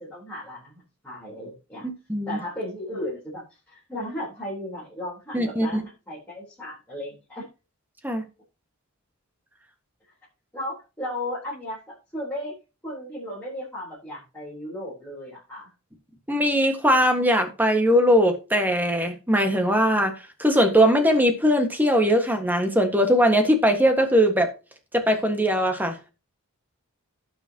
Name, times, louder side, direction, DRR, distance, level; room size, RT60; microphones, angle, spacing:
voice 1, 0.0-1.9 2.3-7.5 10.5-12.5 12.8-15.7, left 1 dB, 10° left, 3.9 m, -35 dB
voice 2, 1.8-2.4 5.3-5.8 8.0-8.2 16.3-24.5 24.9-26.0, equal, 10° right, 1.6 m, -20 dB
16.5 x 6.2 x 2.9 m
head